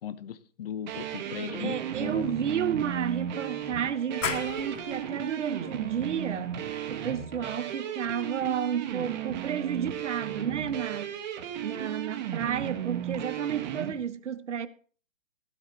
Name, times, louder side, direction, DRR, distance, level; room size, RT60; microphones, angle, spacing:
voice 1, 0.0-2.3, left 9 dB, 50° left, 1.2 m, -37 dB
sound 1, 0.9-13.9, right 10 dB, 35° right, 2.3 m, -35 dB
voice 2, 1.2-6.6 6.9-11.2 11.6-14.7, right 8 dB, 65° right, 1.4 m, -32 dB
Wind instrument woodwind instrument, 2.6-8.3, left 5 dB, 25° left, 3.4 m, -54 dB
sound 2, 4.2-9.6, left 6 dB, 80° left, 1.9 m, -40 dB
16.5 x 12.0 x 3.5 m
hypercardioid pair, 155°, 38 cm